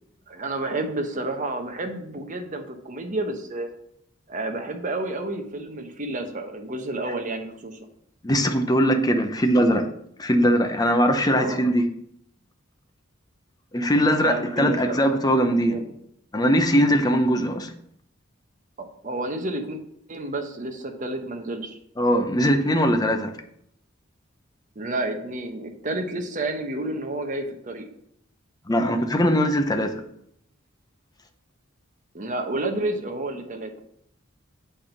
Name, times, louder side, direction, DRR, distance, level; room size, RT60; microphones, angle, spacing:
voice 1, 0.3-3.7 4.3-7.8 11.3-11.6 14.2-15.2 15.7-15.9 18.8-19.8 20.1-21.8 24.7-27.9 32.1-33.7, right 2 dB, 40° right, 1.0 m, -30 dB
voice 2, 8.2-9.8 10.2-11.8 13.7-15.8 16.3-17.7 22.0-23.3 28.7-30.0, equal, 20° left, 0.7 m, -21 dB
8.5 x 3.5 x 5.7 m
head